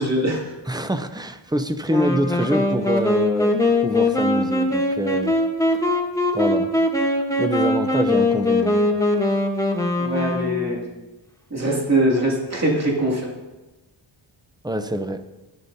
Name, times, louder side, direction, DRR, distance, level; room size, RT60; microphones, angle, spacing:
voice 1, 0.0-0.5 10.0-10.9 11.5-13.3, right 1 dB, 35° right, -3 dB, 2.5 m, -22 dB
voice 2, 0.7-5.3 6.3-6.7 7.4-8.8 14.6-15.2, right 1 dB, 10° right, 8 dB, 0.6 m, -25 dB
Wind instrument woodwind instrument, 1.9-10.9, left 2 dB, 5° left, 1.1 m, -21 dB
13.5 x 11.5 x 2.7 m, 1.1 s
wide cardioid pair, 90°, 48 cm